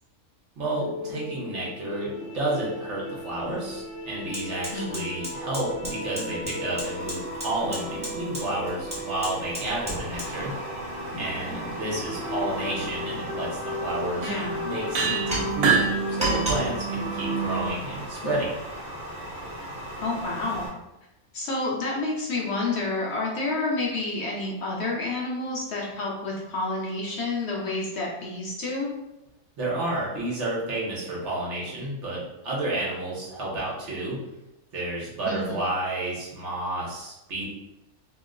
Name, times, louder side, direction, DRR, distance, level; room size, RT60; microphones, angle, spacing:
voice 1, 0.6-2.1 2.3-10.5 11.2-13.5 13.8-14.3 14.6-18.5 29.6-34.2 34.7-37.5, right 1 dB, 60° right, -4 dB, 1.1 m, -31 dB
sound 1, 0.8-17.7, right 1 dB, 20° left, 0.5 m, -34 dB
Fire, 3.2-3.3 3.7-20.7, right 1 dB, 5° right, 0.9 m, -36 dB
voice 2, 4.7-5.1 14.2-14.6 18.2-18.3 20.0-20.7 21.3-28.9 35.3-35.6, left 2 dB, 60° left, -4 dB, 0.8 m, -29 dB
sound 2, 7.0-10.5 13.5-13.6 14.2-14.6 14.9-15.9, right 5 dB, 85° right, 1.0 m, -30 dB
2.9 x 2.0 x 3.6 m, 0.93 s
omnidirectional pair, 1.4 m